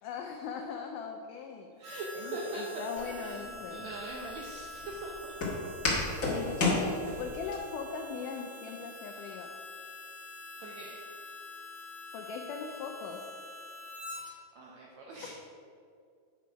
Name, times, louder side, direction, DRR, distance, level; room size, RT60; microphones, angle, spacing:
voice 1, 0.0-1.7 2.2-3.9 6.3-9.5 12.1-13.3 15.2-15.3, left 6 dB, 80° left, 2 dB, 1.8 m, -40 dB
Harmonica, 1.8-14.3, left 1 dB, 55° right, 2.7 m, -46 dB
voice 2, 1.8-2.8 3.2-3.3 3.7-5.3 10.6-10.9 14.5-15.3, right 2 dB, 80° right, -2 dB, 1.6 m, -41 dB
Walk footsteps, 3.0-7.6, left 2 dB, 50° left, 0.9 m, -32 dB
9.3 x 6.0 x 4.7 m, 2.3 s
omnidirectional pair, 4.3 m